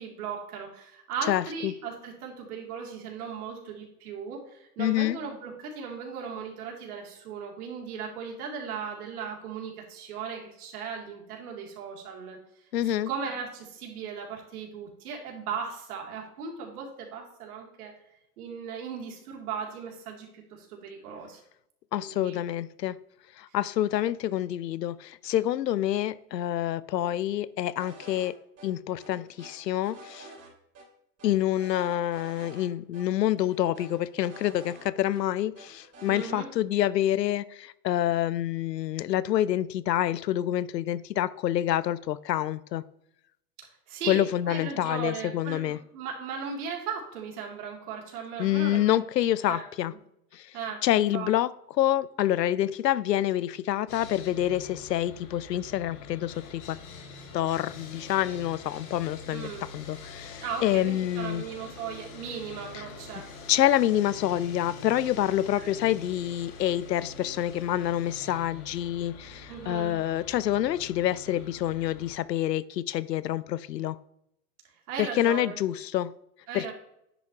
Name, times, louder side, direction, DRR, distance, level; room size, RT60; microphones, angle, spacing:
voice 1, 0.0-12.4 12.8-17.9 18.4-21.4 22.0-22.4 36.1-36.5 43.9-49.0 49.5-49.7 50.5-50.8 51.1-51.3 59.3-59.7 60.4-63.3 65.6-65.7 69.5-70.0 71.3-71.4 74.9-75.6 76.5-76.7, right 6 dB, 65° right, 0 dB, 2.9 m, -37 dB
voice 2, 1.3-1.7 4.8-5.2 12.7-13.1 21.9-23.0 23.4-28.3 28.6-30.3 31.2-42.8 44.1-45.8 48.4-49.9 50.3-50.6 50.8-51.5 51.8-56.8 57.3-61.4 63.5-74.0 75.0-76.1 76.5-76.7, left 12 dB, 90° left, 19 dB, 0.6 m, -27 dB
sound 1, 27.8-28.3 28.6-28.7 29.0-30.5 30.8-30.9 31.2-32.7 32.9-33.0 33.4-35.2 35.6-36.3, right 2 dB, 30° right, 3.1 m, -49 dB
Sawing, 53.9-72.1, left 4 dB, 60° left, 2.1 m, -45 dB
10.0 x 8.2 x 2.9 m, 0.77 s
hypercardioid pair, 110°, 48 cm